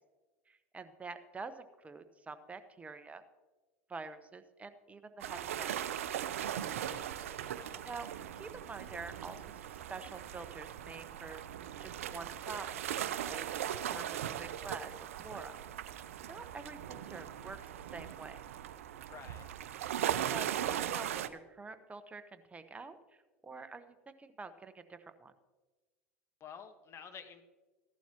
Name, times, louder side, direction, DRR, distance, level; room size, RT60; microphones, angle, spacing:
voice 1, 0.5-3.2 3.9-5.8 7.8-8.1 8.3-11.4 11.8-12.8 13.2-13.5 13.9-15.6 16.2-17.6 17.9-18.4 20.3-23.0 23.4-25.3, right 4 dB, 20° right, 9 dB, 1.0 m, -47 dB
sound 1, 5.2-21.3, right 10 dB, 75° right, 0.6 m, -39 dB
voice 2, 6.5-7.8 19.1-19.5 26.4-27.4, left 7 dB, 35° left, 8 dB, 1.4 m, -51 dB
15.5 x 11.5 x 3.0 m, 1.2 s
hypercardioid pair, 80°, 7 cm